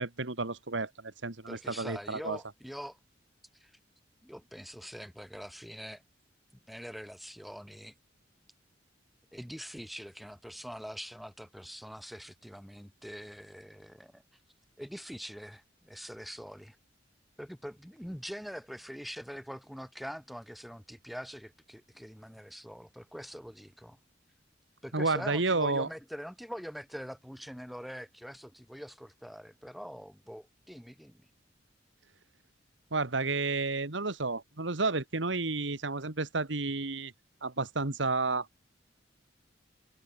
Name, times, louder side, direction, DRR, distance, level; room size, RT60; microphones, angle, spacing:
voice 1, 0.0-2.4 24.9-25.9 32.9-37.1 37.4-38.5, right 3 dB, 75° right, 1.9 m, -31 dB
voice 2, 1.5-3.0 3.6-3.7 4.2-6.0 6.7-7.9 9.3-14.2 14.8-16.8 17.4-24.0 24.8-31.3, equal, ahead, 6.3 m, -44 dB
head